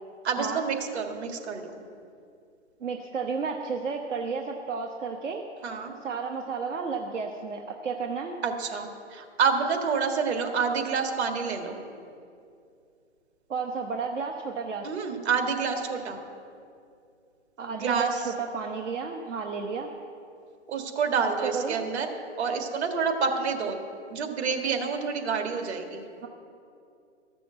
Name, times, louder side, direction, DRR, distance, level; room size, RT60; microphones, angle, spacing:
voice 1, 0.2-1.8 5.6-5.9 8.4-11.8 14.8-16.2 17.7-18.2 20.7-22.1 22.4-23.8 24.1-26.0, right 5 dB, 60° right, 4 dB, 1.9 m, -28 dB
voice 2, 2.8-5.4 6.0-8.4 13.5-14.9 17.6-19.9 21.4-21.8 26.2-26.3, right 5 dB, 80° right, 2 dB, 1.1 m, -32 dB
14.0 x 6.9 x 7.5 m, 2.5 s
hypercardioid pair, 140°, 36 cm